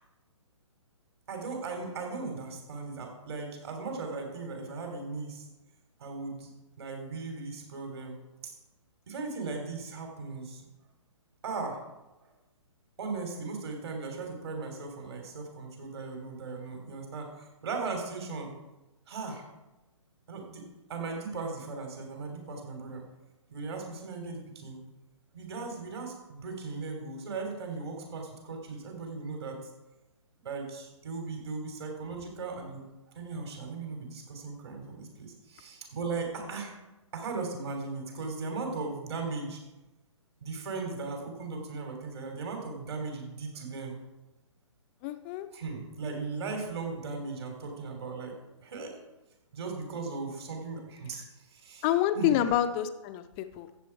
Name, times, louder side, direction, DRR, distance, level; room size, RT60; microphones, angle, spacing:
voice 1, 1.3-5.5 6.0-6.5 6.8-8.5 9.1-10.6 11.4-11.8 13.0-18.5 19.1-19.4 20.3-23.0 23.5-24.8 25.3-29.6 30.4-32.8 33.1-36.7 37.1-39.6 40.4-44.0 45.5-49.0 49.5-51.9 52.1-52.4, right 4 dB, 50° right, 3 dB, 3.4 m, -37 dB
voice 2, 45.0-45.5 51.8-53.8, left 11 dB, 20° left, 11 dB, 0.5 m, -28 dB
14.5 x 8.1 x 4.6 m, 1.0 s
figure-of-eight pair, 130°, 17 cm